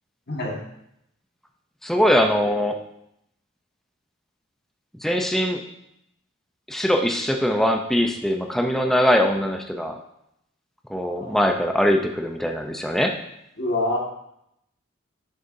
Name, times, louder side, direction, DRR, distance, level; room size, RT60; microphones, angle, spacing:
voice 1, 0.3-0.6 11.2-11.4 13.6-14.0, left 2 dB, 50° left, -1 dB, 1.7 m, -25 dB
voice 2, 1.8-2.8 5.0-5.6 6.7-10.0 10.9-13.1, equal, ahead, 3 dB, 0.5 m, -22 dB
9.2 x 6.7 x 2.6 m, 0.78 s
head